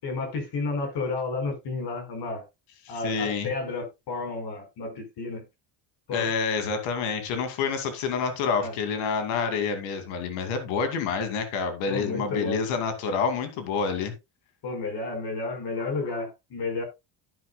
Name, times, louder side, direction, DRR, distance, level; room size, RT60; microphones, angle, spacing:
voice 1, 0.0-2.4 2.9-5.4 6.1-6.3 8.6-8.7 11.9-12.6 14.6-16.8, left 3 dB, 60° left, 4.8 m, -31 dB
voice 2, 2.8-3.5 6.1-14.1, left 5 dB, 90° left, 2.6 m, -28 dB
10.5 x 10.5 x 2.3 m
cardioid pair, 120°, 46 cm